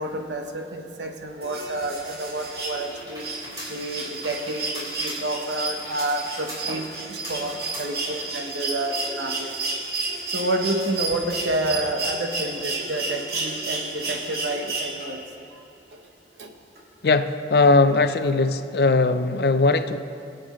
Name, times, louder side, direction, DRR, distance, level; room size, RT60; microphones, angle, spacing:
voice 1, 0.0-3.3 3.7-9.5 10.3-15.2 16.4-16.5, right 1 dB, 75° right, 4 dB, 1.0 m, -29 dB
sound 1, 1.4-15.3 16.7-16.8, right 3 dB, 55° right, 2.0 m, -32 dB
sound 2, 2.8-8.3, equal, 25° right, 3.0 m, -40 dB
voice 2, 17.0-20.0, left 3 dB, 60° left, 10 dB, 0.5 m, -19 dB
22.5 x 7.8 x 3.1 m, 2.6 s
head